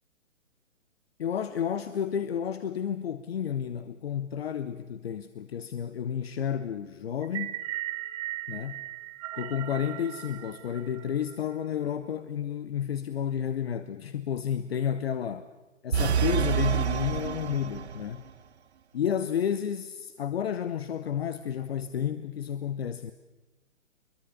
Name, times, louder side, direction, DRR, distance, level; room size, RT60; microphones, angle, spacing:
voice 1, 1.2-7.6 8.5-8.9 9.4-15.4 15.8-18.2 18.9-23.1, left 8 dB, 50° left, 1.1 m, -31 dB
sound 1, 7.2-11.5, right 15 dB, 25° right, 0.7 m, -37 dB
sound 2, 15.9-18.2, right 8 dB, 55° right, 1.0 m, -27 dB
25.5 x 22.5 x 6.9 m
figure-of-eight pair, 125°, 39 cm